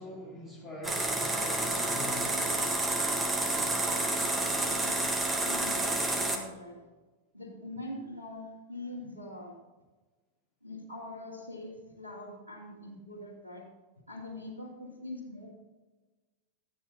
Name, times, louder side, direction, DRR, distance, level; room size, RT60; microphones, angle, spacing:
voice 1, 0.0-2.5, left 2 dB, 25° left, -6 dB, 3.2 m, -44 dB
sound 1, 0.8-6.4, right 2 dB, 10° right, 1.8 m, -29 dB
voice 2, 3.4-5.1 5.5-6.9 7.3-9.6 10.6-13.7 14.1-15.5, left 1 dB, 85° right, -5 dB, 2.4 m, -43 dB
13.0 x 8.8 x 4.3 m, 1.2 s
figure-of-eight pair, 90°, 0 cm